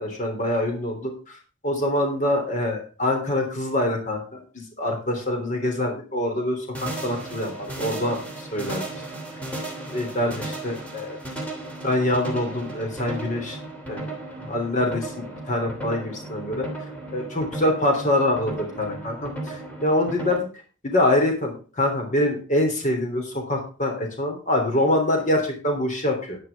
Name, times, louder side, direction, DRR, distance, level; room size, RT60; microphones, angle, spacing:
voice 1, 0.0-1.4 1.6-8.8 9.9-11.2 11.8-13.6 13.9-14.1 14.4-16.7 17.1-20.5 20.8-26.4, left 1 dB, 35° left, 3 dB, 3.3 m, -25 dB
sound 1, 6.7-20.4, right 2 dB, 5° left, 2.9 m, -35 dB
11.0 x 10.5 x 3.6 m, 0.36 s
head